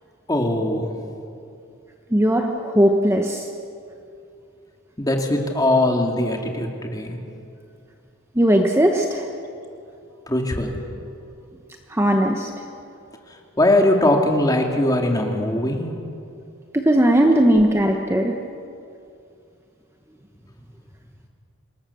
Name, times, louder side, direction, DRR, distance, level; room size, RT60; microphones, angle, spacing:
voice 1, 0.3-0.9 5.0-7.2 10.3-10.8 13.6-15.9, left 1 dB, 20° left, 2 dB, 2.5 m, -20 dB
voice 2, 2.1-3.5 8.3-9.3 11.9-12.5 16.7-18.3, right 1 dB, 10° right, 3 dB, 1.1 m, -18 dB
27.0 x 20.0 x 7.1 m, 2.5 s
head